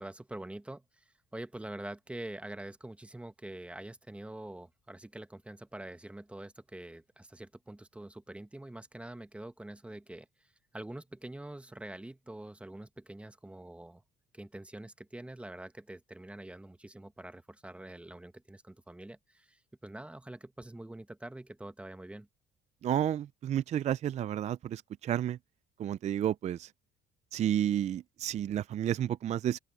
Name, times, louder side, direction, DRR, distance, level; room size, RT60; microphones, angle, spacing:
voice 1, 0.0-10.3 10.7-14.0 14.3-22.3, right 1 dB, 5° right, 1.0 m, -45 dB
voice 2, 22.8-25.4 25.8-26.7 27.3-29.6, right 10 dB, 40° right, 0.4 m, -31 dB
open air
cardioid pair, 110°, 17 cm